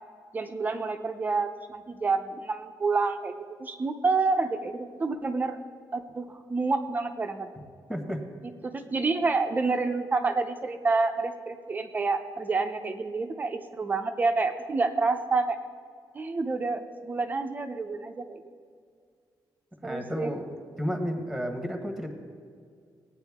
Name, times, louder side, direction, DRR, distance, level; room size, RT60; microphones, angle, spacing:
voice 1, 0.3-5.6 5.9-7.5 8.6-15.6 16.1-18.4 19.8-20.3, right 3 dB, 20° right, 7 dB, 0.6 m, -28 dB
voice 2, 7.9-8.2 19.8-20.5 20.8-22.1, equal, ahead, 4 dB, 1.1 m, -32 dB
18.5 x 8.9 x 3.5 m, 2.1 s
wide cardioid pair, 165°, 8 cm